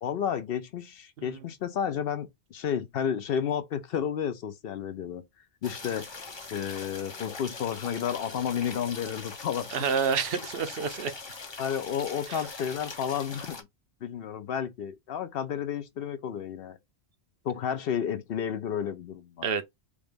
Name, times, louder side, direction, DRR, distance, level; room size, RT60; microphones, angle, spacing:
voice 1, 0.0-5.2 5.6-6.1 6.5-9.7 11.6-13.7 14.0-16.8 17.4-19.6, left 8 dB, 65° left, 0.8 m, -31 dB
sound 1, 5.6-13.6, left 3 dB, 30° left, 0.6 m, -42 dB
voice 2, 9.7-11.1 19.4-19.6, right 6 dB, 65° right, 0.7 m, -28 dB
3.4 x 2.5 x 3.5 m
omnidirectional pair, 1.1 m